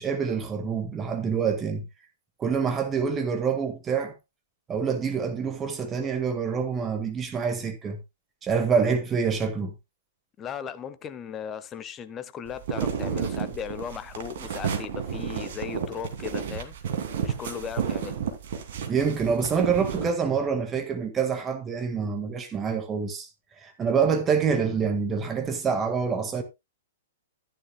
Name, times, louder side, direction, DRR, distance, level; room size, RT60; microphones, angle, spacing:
voice 1, 0.0-1.8 2.4-4.1 4.7-8.0 8.4-9.7 18.9-23.3 23.6-26.4, right 6 dB, 20° right, 1.8 m, -26 dB
voice 2, 10.4-16.7 17.2-18.2, left 8 dB, 20° left, 1.1 m, -37 dB
sound 1, 12.5-20.1, right 7 dB, 55° right, 2.6 m, -31 dB
14.0 x 10.0 x 2.3 m
figure-of-eight pair, 110°, 0 cm